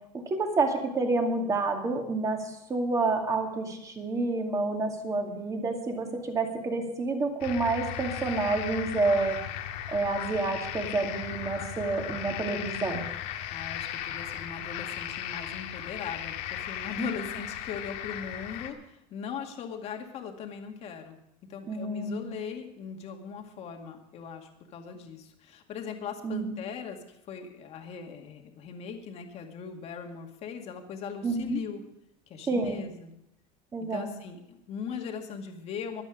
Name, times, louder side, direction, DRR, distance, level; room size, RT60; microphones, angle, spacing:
voice 1, 0.3-9.4 9.9-13.0 17.0-17.1 21.7-22.2 26.2-26.5 31.2-31.6 32.5-32.8 33.7-34.1, right 3 dB, 20° right, 3 dB, 2.3 m, -29 dB
sound 1, 7.4-18.7, left 11 dB, 65° left, 1.7 m, -36 dB
voice 2, 13.5-21.2 21.5-27.0 27.3-31.8 32.3-33.1 33.9-36.0, left 6 dB, 40° left, 3 dB, 2.1 m, -39 dB
23.0 x 8.1 x 5.1 m, 0.82 s
cardioid pair, 155°, 17 cm